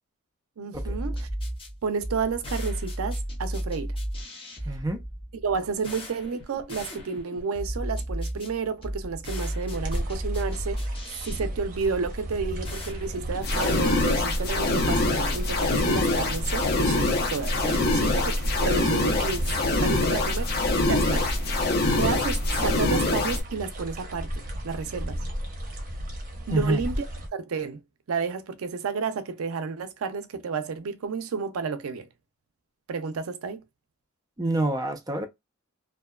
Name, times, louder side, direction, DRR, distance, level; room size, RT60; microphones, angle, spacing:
voice 1, 0.6-1.3 1.8-4.0 5.4-10.9 11.2-19.4 19.8-21.6 21.9-25.2 26.5-27.0 27.3-27.8 28.1-32.1 32.9-33.6, right 5 dB, 80° right, 0.5 m, -31 dB
sound 1, 0.7-14.3, equal, 25° left, 1.1 m, -34 dB
voice 2, 4.7-5.0 26.5-26.8 34.4-35.3, right 2 dB, 20° right, 0.5 m, -27 dB
sound 2, 9.7-27.3, equal, 40° right, 0.8 m, -36 dB
sound 3, 13.4-23.4, left 2 dB, 50° left, 0.7 m, -24 dB
2.6 x 2.2 x 2.2 m
head